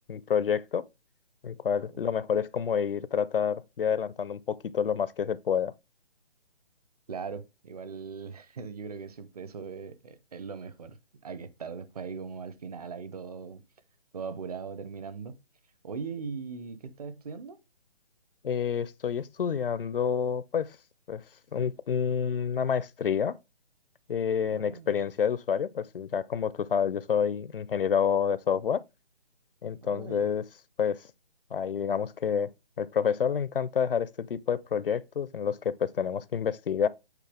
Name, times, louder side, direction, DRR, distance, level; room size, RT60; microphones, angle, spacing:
voice 1, 0.1-0.8 1.4-5.7 18.4-20.8 21.1-21.2 21.5-23.4 24.1-28.8 29.6-30.4 30.8-31.0 31.5-32.5 32.8-36.9, left 7 dB, 65° left, 0.6 m, -28 dB
voice 2, 7.1-13.6 14.1-15.4 15.8-17.6 24.5-24.9 29.8-30.3, right 5 dB, 40° right, 0.8 m, -40 dB
8.3 x 4.1 x 3.4 m
hypercardioid pair, 160°, 30 cm